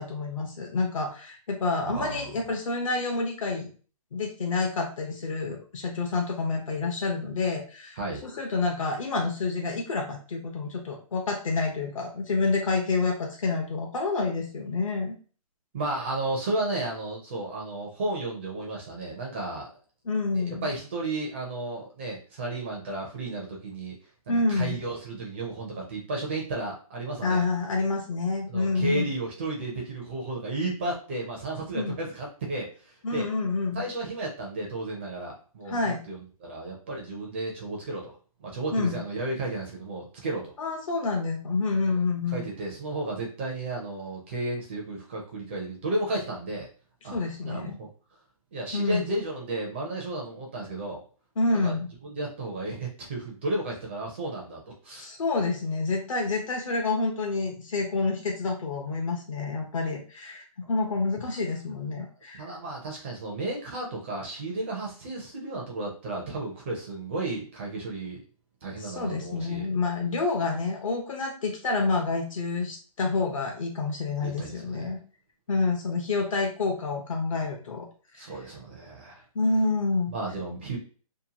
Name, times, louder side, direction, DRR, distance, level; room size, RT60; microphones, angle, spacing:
voice 1, 0.0-3.7 4.1-15.2 20.1-20.7 24.3-24.8 27.2-29.1 31.7-32.0 33.0-33.8 35.7-36.0 38.7-39.0 40.6-42.4 47.1-47.8 48.7-49.0 51.4-51.9 55.0-62.4 68.8-75.0 75.5-77.9 78.1-78.3 79.3-80.1, left 3 dB, 60° left, 1 dB, 0.7 m, -28 dB
voice 2, 1.9-2.3 8.0-8.2 15.7-19.7 20.3-24.0 24.3-27.4 28.5-33.3 33.7-38.1 38.4-40.5 41.8-42.0 42.3-46.7 47.0-47.2 47.5-47.9 48.5-51.0 51.6-51.8 52.0-55.1 62.4-68.2 68.6-69.7 74.2-75.0 78.1-79.2 80.1-80.8, right 2 dB, 20° right, -1 dB, 0.4 m, -33 dB
2.8 x 2.2 x 2.7 m, 0.39 s
hypercardioid pair, 160°, 19 cm